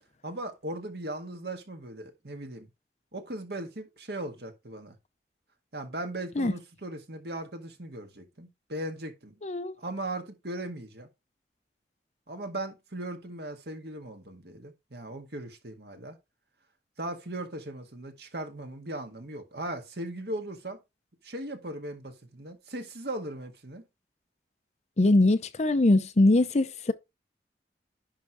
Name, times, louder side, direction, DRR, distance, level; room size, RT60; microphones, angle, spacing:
voice 1, 0.2-2.7 3.1-4.9 5.7-9.4 9.8-11.1 12.3-16.2 17.0-20.8 21.2-23.8, right 1 dB, 65° right, 1.8 m, -38 dB
voice 2, 9.4-9.8 25.0-26.9, left 2 dB, 40° left, 0.6 m, -22 dB
10.5 x 3.6 x 4.7 m
head